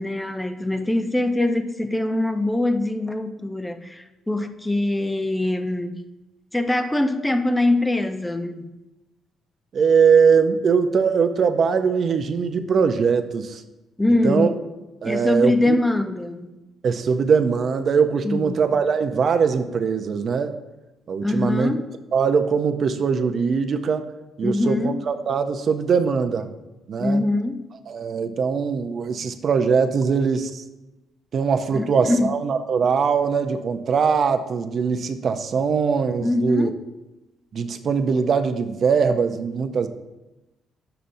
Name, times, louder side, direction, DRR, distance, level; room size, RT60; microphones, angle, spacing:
voice 1, 0.0-6.0 6.5-8.7 14.0-14.6 15.0-16.6 18.2-18.6 21.2-21.9 24.4-25.0 27.0-27.6 31.7-32.3 36.2-36.8, left 2 dB, 5° left, 8 dB, 0.5 m, -23 dB
voice 2, 9.7-13.6 14.2-14.5 15.0-15.8 16.8-20.6 21.1-21.7 22.1-24.1 24.4-26.5 26.9-27.2 27.9-30.6 31.3-36.7 37.5-39.9, right 6 dB, 45° right, 8 dB, 0.5 m, -21 dB
9.9 x 6.7 x 2.6 m, 1.0 s
cardioid pair, 140°, 0 cm